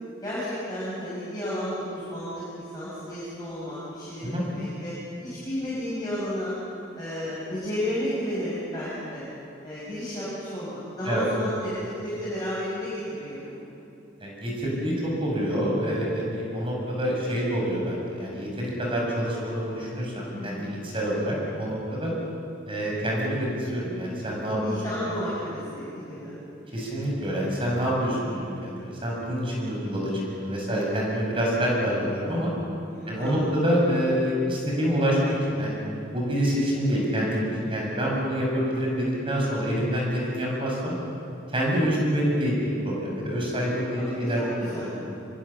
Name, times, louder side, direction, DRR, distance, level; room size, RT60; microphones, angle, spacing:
voice 1, 0.2-4.9 5.2-6.5 6.9-9.3 9.6-13.5 20.3-20.7 24.5-26.3 32.9-33.6 43.4-43.7 43.9-44.9, equal, 20° left, -10 dB, 7.1 m, -33 dB
voice 2, 14.2-22.1 22.7-24.6 25.0-25.1 26.7-32.5 33.1-35.8 36.1-40.9 41.5-44.9, equal, 30° right, -3 dB, 6.9 m, -27 dB
25.5 x 22.5 x 7.2 m, 2.6 s
head